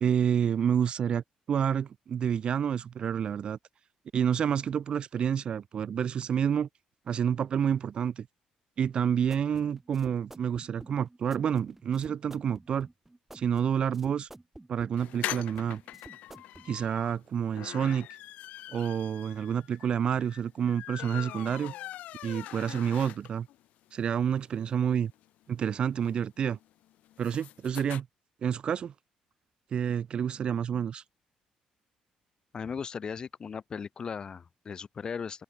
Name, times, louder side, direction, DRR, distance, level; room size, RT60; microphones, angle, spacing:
voice 1, 0.0-3.6 4.1-6.7 7.1-8.3 8.8-12.9 13.3-14.3 14.7-15.8 16.7-18.1 18.7-21.7 22.2-23.5 23.9-25.1 25.5-26.6 27.2-28.1 28.4-28.9 29.7-31.0, right 8 dB, 45° right, 0.4 m, -29 dB
sound 1, 8.8-16.7, right 2 dB, 10° right, 7.6 m, -51 dB
sound 2, 15.0-23.6 23.9-24.0 24.3-24.4 24.6-28.0, left 14 dB, 80° left, 4.1 m, -42 dB
voice 2, 32.5-35.4, left 6 dB, 35° left, 2.2 m, -37 dB
open air
cardioid pair, 140°, 2 cm